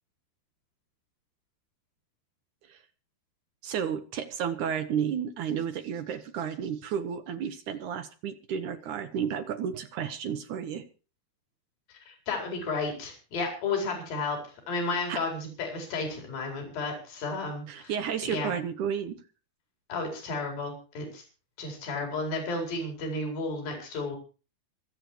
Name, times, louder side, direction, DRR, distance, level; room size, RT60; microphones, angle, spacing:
voice 1, 3.6-10.8 15.1-15.2 17.7-19.2, right 8 dB, 70° right, 10 dB, 2.1 m, -32 dB
voice 2, 12.1-14.4 14.7-17.9 18.2-18.5 19.9-21.2 21.6-24.2, left 3 dB, 65° left, 2 dB, 6.3 m, -32 dB
25.5 x 8.5 x 4.5 m, 0.36 s
omnidirectional pair, 4.4 m